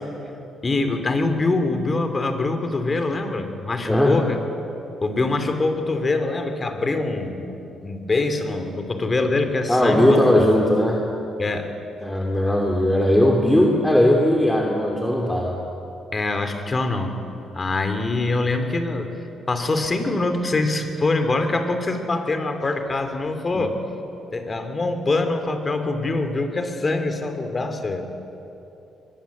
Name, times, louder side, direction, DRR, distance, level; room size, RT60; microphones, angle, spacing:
voice 1, 0.6-4.4 5.0-7.6 7.8-10.2 10.5-10.6 11.4-11.7 13.6-13.7 16.1-17.2 17.5-23.8 24.3-28.0, left 2 dB, 30° left, 8 dB, 3.0 m, -24 dB
voice 2, 3.8-4.2 9.7-11.0 12.0-15.6 23.5-23.6, left 1 dB, 10° left, 0 dB, 2.9 m, -18 dB
23.0 x 21.0 x 8.6 m, 2.9 s
cardioid pair, 90°, 0 cm